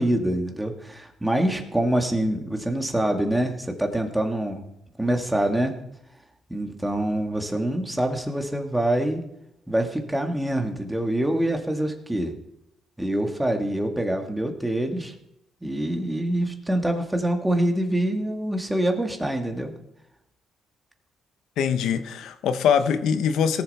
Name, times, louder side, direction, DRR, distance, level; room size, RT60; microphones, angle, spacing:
voice 1, 0.0-4.6 5.0-5.8 6.5-9.2 9.7-12.3 13.0-15.1 15.6-19.8, right 1 dB, 10° right, 4 dB, 1.9 m, -25 dB
voice 2, 21.6-23.6, left 7 dB, 80° left, 11 dB, 0.9 m, -23 dB
18.0 x 7.2 x 4.2 m, 0.83 s
cardioid pair, 90°, 0 cm